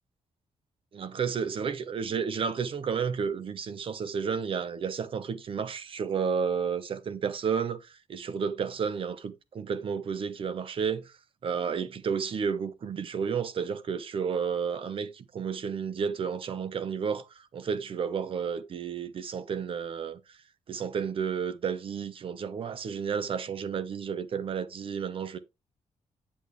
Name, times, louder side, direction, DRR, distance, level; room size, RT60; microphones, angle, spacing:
voice 1, 0.9-11.1 11.4-20.4 20.7-25.4, right 6 dB, 50° right, 0.9 m, -32 dB
8.6 x 7.6 x 3.2 m
wide cardioid pair, 145°, 12 cm